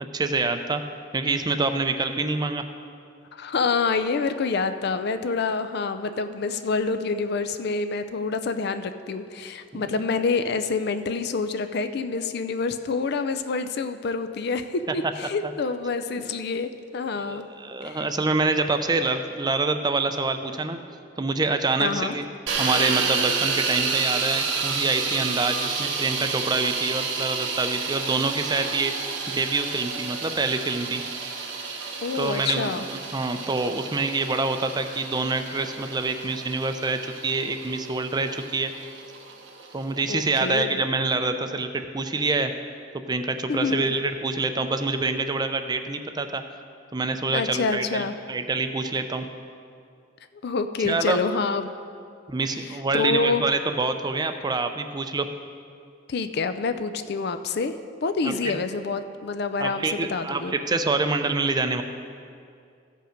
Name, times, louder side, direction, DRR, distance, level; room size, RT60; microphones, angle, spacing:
voice 1, 0.1-0.8 1.1-2.6 9.7-9.8 16.2-16.3 17.1-20.8 21.2-22.2 22.6-31.0 32.1-32.7 33.1-38.7 39.7-42.5 43.1-46.4 46.9-49.3 50.8-51.2 52.3-55.3 58.2-58.3 59.6-61.8, right 3 dB, 20° right, 8 dB, 0.5 m, -26 dB
voice 2, 3.3-17.4 17.9-18.1 21.8-22.2 32.0-32.9 40.1-40.8 43.5-43.9 47.3-48.2 50.4-51.7 52.5-53.4 56.1-57.7 58.0-60.5, left 4 dB, 60° left, 10 dB, 0.5 m, -27 dB
sound 1, 22.5-40.4, right 5 dB, 90° right, 1.0 m, -30 dB
15.0 x 5.4 x 5.1 m, 2.4 s
head